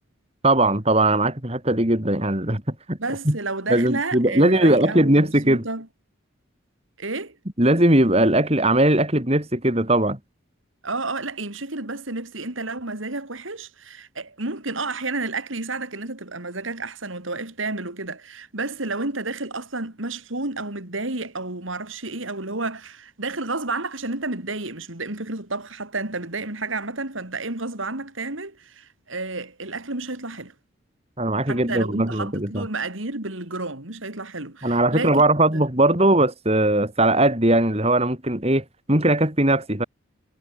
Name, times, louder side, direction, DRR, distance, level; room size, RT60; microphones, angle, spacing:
voice 1, 0.4-3.0 3.3-3.4 3.7-5.7 7.6-10.2 31.2-32.7 34.6-39.8, right 1 dB, 30° right, 3.6 m, -19 dB
voice 2, 3.0-5.9 7.0-7.4 10.8-30.5 31.5-35.2 35.5-35.6, right 3 dB, 75° right, 3.5 m, -31 dB
head